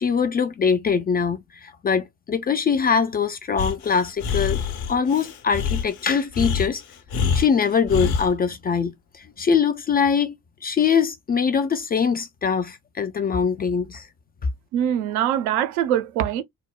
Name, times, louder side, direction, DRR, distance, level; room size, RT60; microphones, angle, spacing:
voice 1, 0.0-4.6 4.9-6.8 7.3-10.3 10.6-14.1, left 6 dB, 25° left, 0.3 m, -22 dB
Breathing, 3.6-8.3, left 6 dB, 55° left, 0.8 m, -26 dB
voice 2, 14.7-16.4, right 10 dB, 65° right, 0.6 m, -23 dB
3.3 x 2.0 x 2.3 m
figure-of-eight pair, 45°, 44 cm